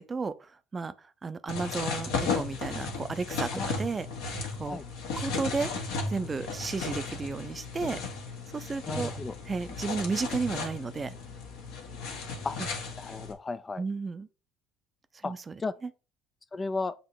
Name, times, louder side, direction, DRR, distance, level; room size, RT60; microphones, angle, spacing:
voice 1, 0.0-4.1 4.6-4.8 5.1-5.7 6.1-8.0 8.5-9.1 9.5-11.1 13.8-14.3 15.1-15.5 15.8-15.9, right 4 dB, 30° right, 0.6 m, -33 dB
sound 1, 1.5-13.3, left 4 dB, 70° left, 1.5 m, -35 dB
voice 2, 8.9-9.4 12.4-12.6 13.0-13.8 15.2-15.3 15.6-15.7 16.5-16.9, left 3 dB, 25° left, 0.4 m, -34 dB
7.6 x 2.9 x 4.6 m
hypercardioid pair, 60°, 0 cm